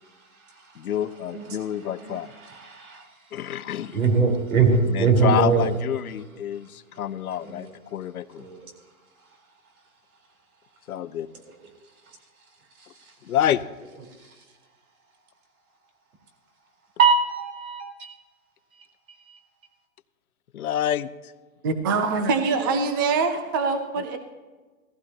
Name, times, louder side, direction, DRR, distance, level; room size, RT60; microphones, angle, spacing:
voice 1, 0.8-2.3 3.3-4.0 4.9-8.5 10.9-11.3 13.2-13.6 20.5-21.3, left 10 dB, 85° left, 14 dB, 0.8 m, -28 dB
voice 2, 2.0-3.0 3.9-5.7 7.4-7.7 8.4-8.7 17.0-18.1 19.3-19.4, right 5 dB, 75° right, 2 dB, 4.2 m, -22 dB
voice 3, 21.6-24.2, right 4 dB, 15° right, 8 dB, 0.4 m, -24 dB
17.5 x 15.0 x 2.9 m, 1.3 s
hypercardioid pair, 145°, 43 cm